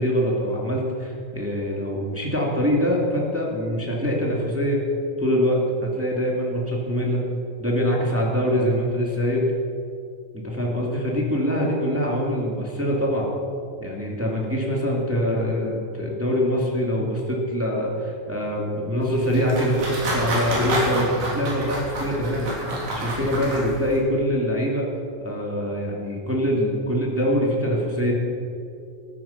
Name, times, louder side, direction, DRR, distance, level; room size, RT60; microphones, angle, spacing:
voice 1, 0.0-4.8 5.2-7.2 7.6-9.4 10.3-13.3 13.8-22.5 22.9-24.8 25.2-28.1, equal, 5° right, -3 dB, 1.4 m, -24 dB
sound 1, 19.0-24.0, right 1 dB, 60° right, 4.8 m, -29 dB
14.5 x 13.0 x 5.8 m, 2.5 s
omnidirectional pair, 4.2 m